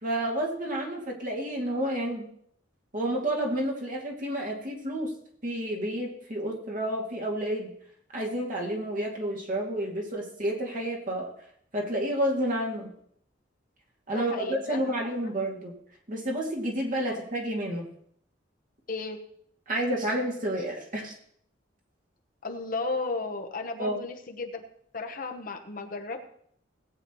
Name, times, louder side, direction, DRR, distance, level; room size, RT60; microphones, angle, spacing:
voice 1, 0.0-2.3 2.9-5.1 5.4-7.7 8.1-11.3 11.7-12.9 14.1-15.7 16.1-17.9 19.7-21.1 23.8-24.0, right 1 dB, 45° right, -1 dB, 2.3 m, -30 dB
voice 2, 14.1-15.3 17.1-17.2 18.9-19.2 22.4-24.6 24.9-26.2, left 3 dB, 50° left, 4 dB, 1.0 m, -34 dB
18.0 x 8.6 x 3.1 m, 0.65 s
head